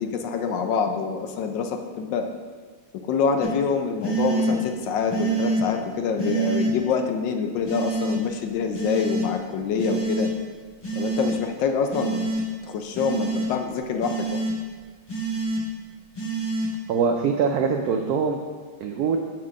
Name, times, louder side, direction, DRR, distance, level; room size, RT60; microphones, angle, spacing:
voice 1, 0.0-2.3 3.0-10.3 11.0-12.3 12.7-14.4, left 6 dB, 75° left, 6 dB, 1.2 m, -26 dB
sound 1, 3.4-3.5 4.0-4.6 5.1-5.6 6.2-6.7 7.7-8.2 8.7-9.3 9.8-10.3 10.8-11.3 11.9-12.4 12.9-13.5 14.0-14.5 15.1-15.6 16.2-16.7, right 3 dB, 20° left, 0.7 m, -26 dB
voice 2, 16.9-18.4 18.8-19.2, right 6 dB, 85° right, 3 dB, 0.8 m, -23 dB
5.9 x 4.6 x 6.2 m, 1.5 s
omnidirectional pair, 2.2 m